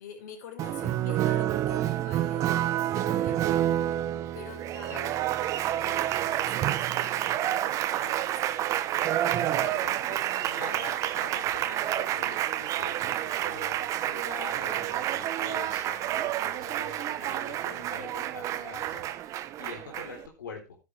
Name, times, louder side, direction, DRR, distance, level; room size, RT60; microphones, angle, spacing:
voice 1, 0.0-3.5 4.3-5.1 5.7-8.4 9.5-9.9 17.9-18.2, left 7 dB, 65° left, 5 dB, 5.2 m, -46 dB
Applause, 0.6-20.3, right 12 dB, 30° right, 1.1 m, -29 dB
voice 2, 9.6-20.8, left 5 dB, 85° left, 2 dB, 3.8 m, -45 dB
13.0 x 10.5 x 3.3 m, 0.26 s
hypercardioid pair, 130°, 10 cm